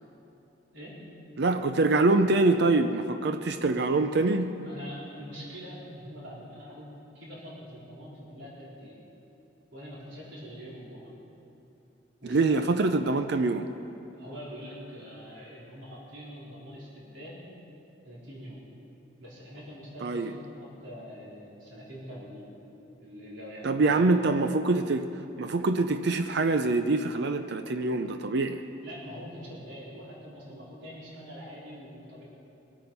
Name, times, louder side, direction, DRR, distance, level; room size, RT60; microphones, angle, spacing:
voice 1, 1.4-4.5 12.2-13.7 20.0-20.3 23.6-25.1 25.4-28.6, right 3 dB, 60° right, 8 dB, 0.5 m, -25 dB
voice 2, 4.6-9.0 9.7-11.1 12.2-12.7 14.1-17.4 18.0-18.6 19.2-22.5 23.0-24.1 28.8-32.2, equal, 75° right, -6 dB, 4.2 m, -44 dB
22.5 x 9.0 x 5.4 m, 2.9 s
head